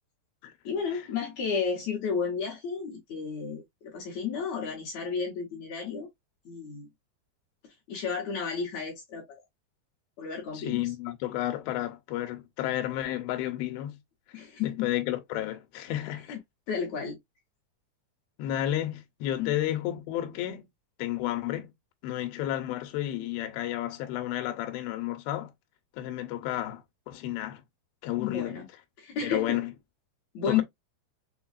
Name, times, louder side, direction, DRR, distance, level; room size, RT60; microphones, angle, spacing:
voice 1, 0.6-6.1 6.5-6.9 7.9-9.4 10.2-10.8 14.3-14.9 16.3-16.4 16.7-17.2 19.4-19.5 28.2-28.7 29.0-29.6 30.3-30.6, left 6 dB, 65° left, 1.9 m, -32 dB
voice 2, 10.5-14.0 14.4-16.4 18.4-20.7 21.0-21.7 22.0-25.5 26.0-27.6 28.0-28.6 29.2-29.7 30.5-30.6, left 13 dB, 85° left, 2.5 m, -32 dB
6.2 x 2.2 x 2.4 m
omnidirectional pair, 4.4 m